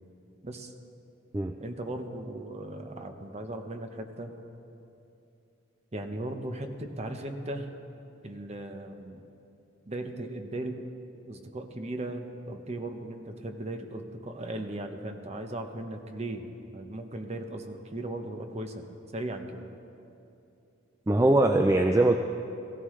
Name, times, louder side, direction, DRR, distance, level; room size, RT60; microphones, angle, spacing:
voice 1, 0.4-0.7 1.6-4.3 5.9-7.7 8.2-9.2 9.9-10.8 11.3-18.8 19.1-19.7, right 1 dB, 35° right, 5 dB, 0.9 m, -37 dB
voice 2, 21.1-22.2, right 2 dB, 15° right, 5 dB, 0.3 m, -22 dB
18.5 x 15.0 x 3.2 m, 2.8 s
head